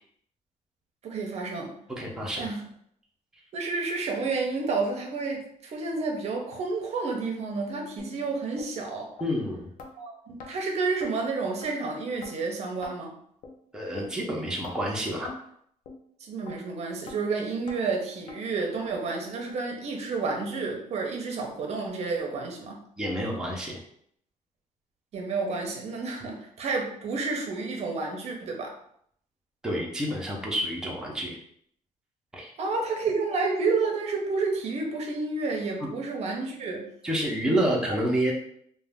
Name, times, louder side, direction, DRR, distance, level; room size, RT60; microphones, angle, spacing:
voice 1, 1.0-1.8 2.4-2.6 3.5-9.1 10.0-13.1 16.2-22.8 25.1-28.7 32.6-36.8 37.6-38.0, right 4 dB, 55° right, 1 dB, 0.6 m, -30 dB
voice 2, 2.0-2.5 9.2-9.7 13.7-15.3 23.0-23.8 29.6-31.4 32.3-32.5 35.8-35.9 37.0-38.3, equal, 5° right, -3 dB, 0.6 m, -28 dB
sound 1, 8.0-8.1 8.6-8.7 9.2-9.3 9.8-9.9 10.4-10.5 11.0-11.1 11.6-11.7 12.2-12.4 12.8-13.0 13.4-13.6 14.0-14.2 14.6-14.8 15.3-15.4 15.9-16.0 16.5-16.6 17.1-17.2 17.7-17.8 18.3-18.4 18.9-19.0 19.5-19.6 20.1-20.2 20.7-20.8, left 4 dB, 90° left, 0.5 m, -43 dB
2.4 x 2.1 x 3.4 m, 0.68 s
cardioid pair, 125°, 13 cm